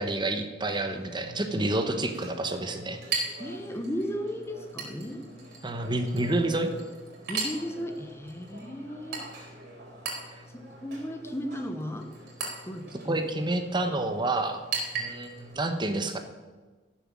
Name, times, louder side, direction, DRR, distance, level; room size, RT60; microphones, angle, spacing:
voice 1, 0.0-3.2 5.6-6.7 10.4-10.5 13.1-14.6 15.0-16.2, right 2 dB, 25° right, 6 dB, 1.1 m, -29 dB
Chink clink, 0.6-15.6, right 4 dB, 60° right, 4.2 m, -39 dB
voice 2, 3.4-5.2 7.3-9.2 10.5-12.1 12.6-13.2, equal, 15° left, 5 dB, 1.0 m, -35 dB
14.0 x 7.3 x 7.5 m, 1.3 s
head